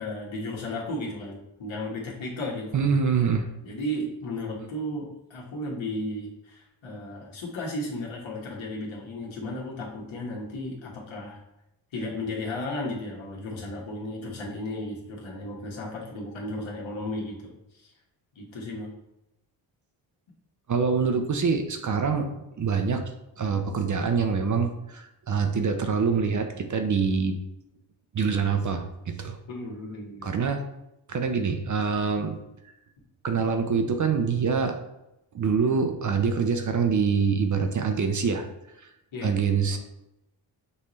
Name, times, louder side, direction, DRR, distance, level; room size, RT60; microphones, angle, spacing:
voice 1, 0.0-2.9 3.6-11.4 11.9-17.9 18.3-18.9 29.5-30.3 39.1-39.3 39.7-39.8, left 1 dB, 65° left, -2 dB, 1.5 m, -34 dB
voice 2, 2.7-3.5 20.7-23.0 23.4-27.4 28.1-29.4 30.2-30.6 31.1-32.4 33.2-34.8 35.3-38.4 38.8-38.9 39.2-39.8, right 5 dB, 40° right, 6 dB, 0.6 m, -25 dB
5.4 x 2.7 x 3.1 m, 0.89 s
supercardioid pair, 55°, 50 cm